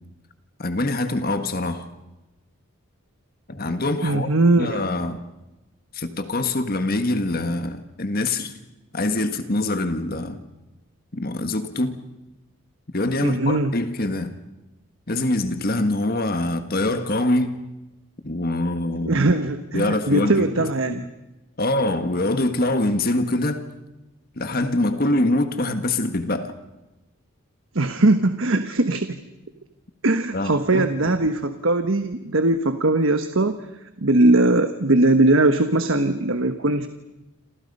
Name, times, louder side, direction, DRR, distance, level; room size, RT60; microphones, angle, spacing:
voice 1, 0.6-1.9 3.5-4.3 4.6-5.2 5.9-8.5 8.9-10.4 11.1-12.0 12.9-14.4 15.1-17.6 18.2-19.2 19.7-21.1 21.6-23.7 24.3-26.5 30.3-30.9, left 2 dB, 45° left, 1.6 m, -24 dB
voice 2, 4.0-4.9 13.2-13.7 19.0-21.1 27.7-29.2 30.0-33.7 34.0-36.9, right 2 dB, 65° right, 1.2 m, -20 dB
28.5 x 27.5 x 5.5 m
head